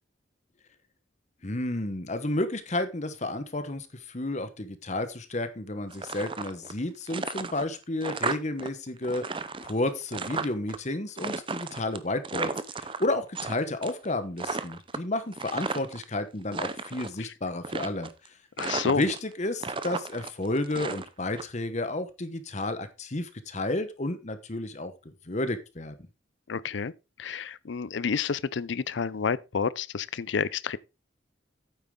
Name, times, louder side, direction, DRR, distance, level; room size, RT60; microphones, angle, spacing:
voice 1, 1.4-18.3 18.9-26.0, left 2 dB, 35° left, 1.1 m, -31 dB
sound 1, 5.9-6.8 7.1-8.7 9.0-10.8 11.2-13.5 13.8-14.1 14.4-16.0 16.4-17.1 17.6-18.3 18.6-19.3 19.6-21.4, right 4 dB, 25° right, 0.6 m, -34 dB
voice 2, 18.6-19.0 26.5-26.9 27.2-30.8, left 6 dB, 65° left, 0.5 m, -29 dB
9.1 x 8.1 x 3.7 m
head